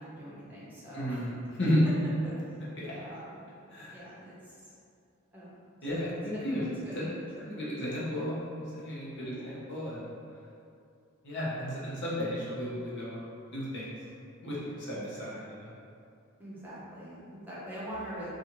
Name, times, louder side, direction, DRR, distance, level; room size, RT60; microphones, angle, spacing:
voice 1, 0.0-1.2 2.2-2.3 3.0-3.4 3.9-4.7 5.3-5.5 5.9-6.0 6.8-6.9 7.4-7.5 9.2-9.6 14.9-15.1 16.4-18.3, right 1 dB, 10° right, -9 dB, 0.8 m, -44 dB
voice 2, 0.9-1.3 1.6-1.8 2.6-3.0 3.7-4.0 5.8-6.6 6.9-7.1 7.4-10.1 11.2-13.2 13.5-13.9 14.4-15.7, equal, 60° left, -8 dB, 1.0 m, -33 dB
4.2 x 2.4 x 3.0 m, 2.4 s
head